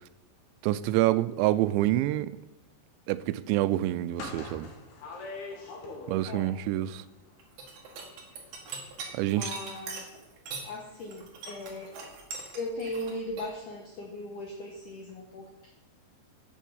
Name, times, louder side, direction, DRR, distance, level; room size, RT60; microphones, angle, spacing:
voice 1, 0.6-2.3 3.1-4.7 6.1-7.0 9.1-9.5, right 15 dB, 90° right, 2.8 m, -27 dB
sound 1, 4.1-6.5 6.8-8.3 8.6-8.8 9.0-9.2, left 3 dB, 55° left, 2.7 m, -42 dB
voice 2, 6.3-6.6 9.3-10.1 10.6-11.9 12.5-15.7, left 1 dB, 80° left, 1.8 m, -38 dB
sound 2, 7.4-10.7 11.0-13.5, right 4 dB, 60° right, 3.1 m, -41 dB
9.0 x 7.3 x 7.1 m
omnidirectional pair, 5.1 m